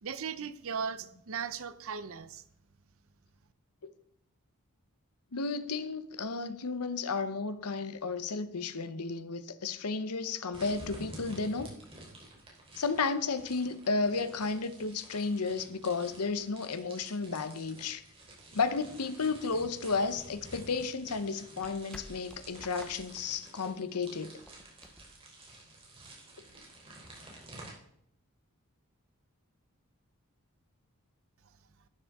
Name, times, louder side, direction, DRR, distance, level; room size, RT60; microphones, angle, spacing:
voice 1, 0.0-2.4, right 6 dB, 65° right, 0.7 m, -37 dB
voice 2, 5.3-11.8 12.8-18.0 18.5-24.4, left 4 dB, 85° left, 0.9 m, -33 dB
sound 1, 10.5-27.7, right 1 dB, 25° right, 3.5 m, -51 dB
sound 2, 20.2-26.1, equal, 5° left, 1.0 m, -54 dB
12.0 x 10.0 x 3.6 m
head